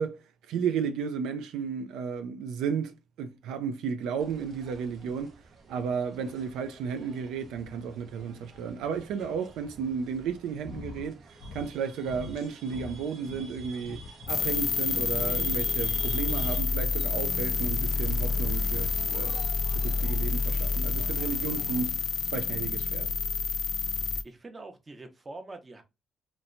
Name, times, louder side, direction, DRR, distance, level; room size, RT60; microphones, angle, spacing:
voice 1, 0.0-5.4 5.7-14.0 14.3-19.4 19.7-21.9 22.3-23.1, right 6 dB, 90° right, 0.3 m, -33 dB
sound 1, 4.2-21.9, right 5 dB, 60° right, 0.7 m, -50 dB
sound 2, 10.6-11.1 11.3-11.8 12.0-14.4 14.9-16.8 18.1-19.6 21.0-22.0, left 4 dB, 85° left, 0.6 m, -44 dB
sound 3, 14.3-24.2, left 5 dB, 45° left, 0.4 m, -28 dB
voice 2, 24.2-25.8, right 2 dB, 25° right, 0.7 m, -44 dB
2.9 x 2.1 x 2.4 m
cardioid pair, 90°, 0 cm